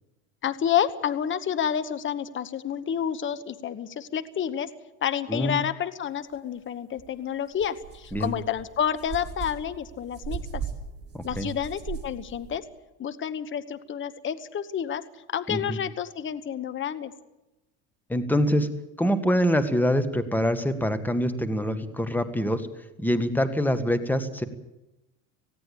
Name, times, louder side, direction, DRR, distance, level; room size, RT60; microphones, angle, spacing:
voice 1, 0.4-4.7 5.0-10.6 11.2-12.6 13.0-15.0 15.3-17.1, left 9 dB, 30° left, 13 dB, 1.2 m, -29 dB
sound 1, 7.0-7.1 7.5-12.6, right 7 dB, 25° right, 7.2 m, -38 dB
voice 2, 11.1-11.5 15.5-15.8 18.1-18.7 19.0-22.6 23.0-24.5, equal, 5° left, 12 dB, 1.8 m, -25 dB
18.5 x 16.5 x 8.5 m, 0.95 s
supercardioid pair, 95°, 40 cm